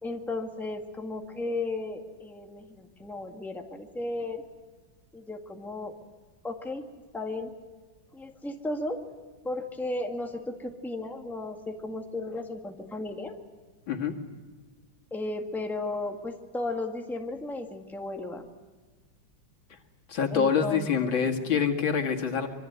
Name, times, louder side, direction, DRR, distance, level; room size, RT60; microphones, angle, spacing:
voice 1, 0.0-4.4 5.1-5.9 6.4-6.9 7.1-7.5 8.1-9.0 9.4-13.3 15.1-18.5 20.3-20.9, left 2 dB, ahead, 2 dB, 1.7 m, -34 dB
voice 2, 20.1-22.5, left 6 dB, 85° left, 2 dB, 2.9 m, -26 dB
25.0 x 23.5 x 8.0 m, 1.3 s
omnidirectional pair, 2.1 m